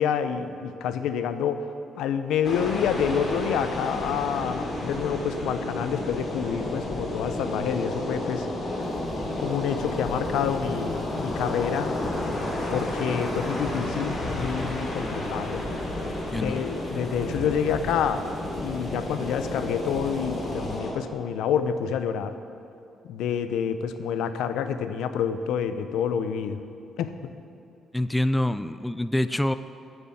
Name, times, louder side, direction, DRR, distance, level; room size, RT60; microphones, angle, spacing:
voice 1, 0.0-1.7 2.0-8.5 9.4-11.9 12.7-15.6 16.3-18.2 18.6-22.4 23.0-26.6 27.0-27.3, left 8 dB, 85° left, 10 dB, 0.6 m, -28 dB
sound 1, 2.4-20.9, left 1 dB, 45° left, 2.9 m, -31 dB
sound 2, 8.8-20.8, right 1 dB, 10° right, 1.1 m, -41 dB
voice 2, 27.9-29.5, left 1 dB, 10° left, 13 dB, 0.4 m, -25 dB
9.4 x 8.1 x 9.4 m, 2.6 s
cardioid pair, 90°, 0 cm